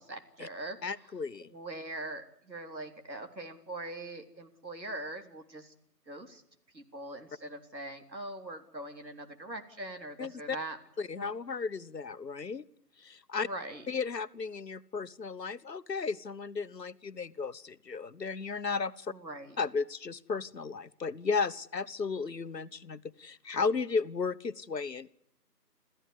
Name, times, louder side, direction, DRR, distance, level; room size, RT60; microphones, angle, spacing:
voice 1, 0.0-0.8 1.5-5.7 6.1-6.4 6.7-10.8 11.2-11.3 13.4-13.9 19.1-19.6, right 1 dB, 90° right, 6 dB, 3.9 m, -42 dB
voice 2, 0.8-1.5 10.2-10.6 11.0-12.6 13.0-13.5 13.9-19.1 19.6-25.1, left 5 dB, 75° left, 15 dB, 1.2 m, -34 dB
28.0 x 14.5 x 10.0 m, 0.72 s
figure-of-eight pair, 160°, 50 cm